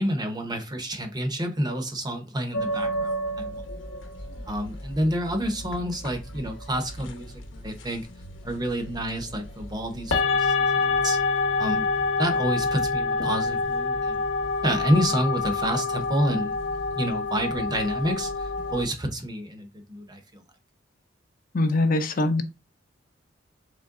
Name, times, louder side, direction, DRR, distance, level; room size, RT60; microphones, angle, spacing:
voice 1, 0.0-3.6 4.4-8.1 8.4-11.2 11.5-11.9 12.2-14.2 14.6-16.5 16.9-20.4, equal, 20° right, 0.6 m, -29 dB
sound 1, 2.5-18.8, left 3 dB, 80° left, 0.9 m, -28 dB
voice 2, 21.5-22.4, left 2 dB, 45° left, 0.5 m, -22 dB
3.8 x 3.2 x 3.6 m
head